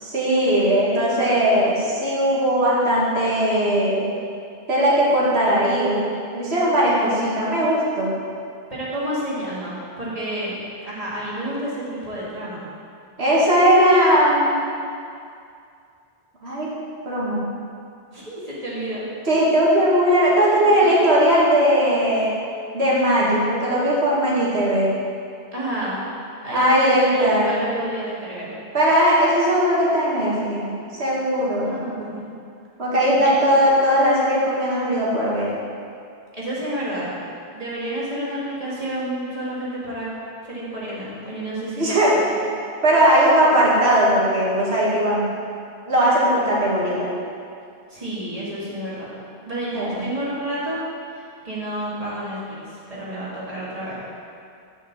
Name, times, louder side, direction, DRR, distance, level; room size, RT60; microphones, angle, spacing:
voice 1, 0.0-4.1 4.7-6.1 6.3-8.1 13.2-14.6 16.4-16.7 17.0-17.5 19.3-22.4 22.7-24.9 26.5-27.5 28.7-30.7 31.0-31.8 32.8-35.5 41.8-42.1 42.8-45.3 45.9-47.1 49.7-50.0, equal, 90° right, -6 dB, 2.2 m, -18 dB
voice 2, 7.0-7.3 8.7-10.6 10.8-12.7 18.1-19.1 25.5-26.1 26.4-28.5 31.6-32.3 33.2-33.3 36.3-37.1 37.5-40.1 40.4-41.9 42.3-42.4 47.9-49.1 49.4-50.8 51.1-54.0, right 1 dB, 35° right, -7 dB, 2.2 m, -30 dB
7.4 x 5.4 x 7.2 m, 2.4 s
omnidirectional pair, 1.1 m